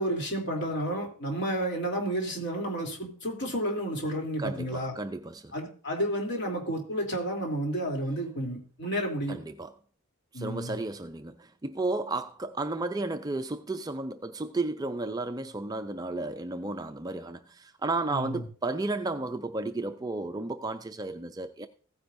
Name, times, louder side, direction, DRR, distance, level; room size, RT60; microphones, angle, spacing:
voice 1, 0.0-4.9 5.5-9.4 10.3-10.8 18.1-18.4, right 1 dB, 50° left, 3.2 m, -31 dB
voice 2, 4.4-5.5 9.3-9.7 10.3-21.7, right 2 dB, 15° right, 0.4 m, -33 dB
16.0 x 9.7 x 2.6 m
head